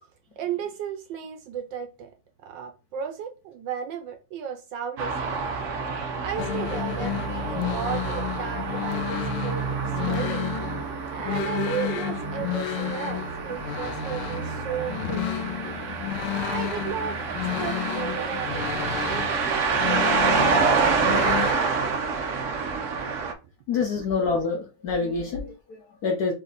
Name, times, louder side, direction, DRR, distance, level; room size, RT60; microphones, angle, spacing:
voice 1, 0.4-2.1 2.4-5.5 6.2-10.5 11.1-15.5 16.3-21.0, right 8 dB, 70° right, 1.1 m, -35 dB
sound 1, 5.0-23.3, right 5 dB, 85° right, 0.6 m, -28 dB
Wind instrument woodwind instrument, 6.3-15.5, right 7 dB, 15° right, 1.0 m, -46 dB
sound 2, 6.4-21.5, left 11 dB, 80° left, 1.4 m, -32 dB
voice 2, 23.7-26.3, left 4 dB, 60° left, 1.0 m, -27 dB
4.1 x 2.8 x 3.9 m
omnidirectional pair, 2.4 m